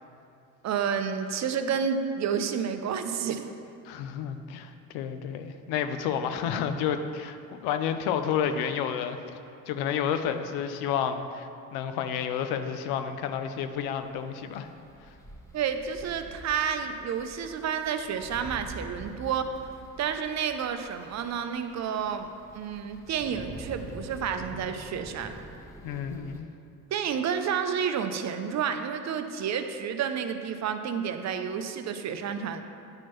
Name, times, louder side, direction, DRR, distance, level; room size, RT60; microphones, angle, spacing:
voice 1, 0.6-3.5 15.5-19.5 20.0-25.3 26.9-32.6, right 7 dB, 45° right, 8 dB, 0.5 m, -30 dB
voice 2, 3.8-9.2 9.7-14.7 25.8-26.5, left 8 dB, 90° left, 8 dB, 0.5 m, -30 dB
sound 1, 13.7-26.4, right 1 dB, 10° left, 1.1 m, -46 dB
9.6 x 4.4 x 3.0 m, 2.5 s
cardioid pair, 90°, 37 cm